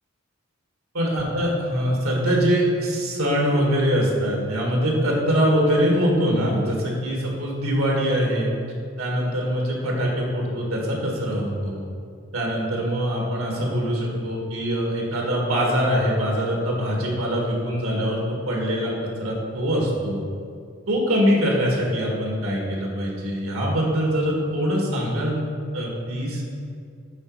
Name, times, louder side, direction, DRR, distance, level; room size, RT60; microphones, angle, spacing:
voice 1, 0.9-8.5 9.0-11.9 12.3-18.9 19.2-20.2 20.9-25.4 25.7-26.4, equal, 85° right, -2 dB, 1.9 m, -23 dB
10.5 x 4.2 x 4.7 m, 2.4 s
head